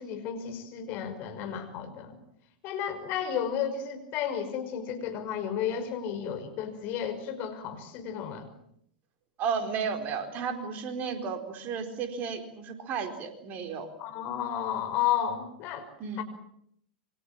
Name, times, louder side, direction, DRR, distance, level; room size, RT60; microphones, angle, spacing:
voice 1, 0.0-2.2 2.6-8.5 14.0-15.9 16.2-16.3, left 9 dB, 40° left, 8 dB, 5.5 m, -32 dB
voice 2, 9.4-13.9 16.0-16.2, right 6 dB, 35° right, 7 dB, 4.4 m, -33 dB
27.5 x 24.5 x 7.5 m, 0.72 s
figure-of-eight pair, 95°, 5 cm